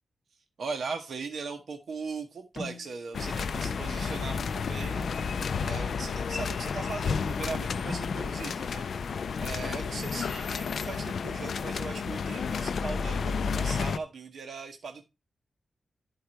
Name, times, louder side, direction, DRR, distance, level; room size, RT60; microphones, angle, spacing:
voice 1, 0.6-5.3 5.6-9.1 9.4-15.0, right 4 dB, 65° right, 4 dB, 1.0 m, -39 dB
sound 1, 2.6-3.2 5.0-5.7 6.7-7.3 7.9-8.7 10.0-10.4 11.9-12.5, left 2 dB, 40° left, 1.9 m, -43 dB
sound 2, 3.1-14.0, left 5 dB, 65° left, 0.4 m, -31 dB
11.5 x 4.6 x 4.4 m, 0.26 s
wide cardioid pair, 155°, 0 cm